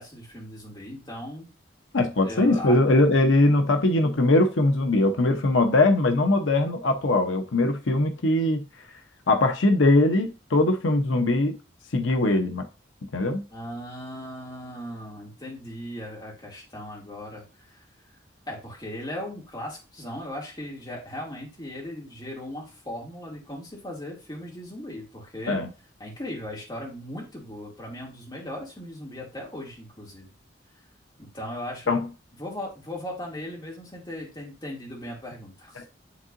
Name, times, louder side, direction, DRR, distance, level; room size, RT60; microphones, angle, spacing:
voice 1, 0.0-1.5 2.2-2.8 13.5-17.8 18.5-25.6 26.0-30.3 31.2-31.9 32.4-35.8, left 1 dB, 20° left, -2 dB, 2.4 m, -38 dB
voice 2, 1.9-8.6 9.3-11.6 11.9-12.6 13.1-13.4 25.5-25.7 31.9-32.0, left 2 dB, 90° left, 6 dB, 0.8 m, -21 dB
10.0 x 3.7 x 2.5 m, 0.31 s
head